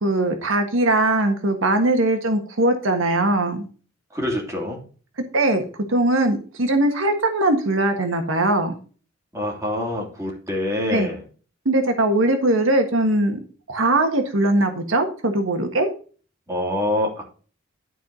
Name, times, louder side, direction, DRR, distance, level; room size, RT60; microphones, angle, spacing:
voice 1, 0.0-3.6 5.3-8.7 10.9-11.1 11.6-13.4 13.7-15.9, right 2 dB, 85° right, 5 dB, 1.5 m, -20 dB
voice 2, 4.1-4.8 9.3-11.2 16.5-17.2, left 1 dB, 15° right, 0 dB, 3.0 m, -25 dB
11.5 x 4.6 x 5.2 m, 0.39 s
head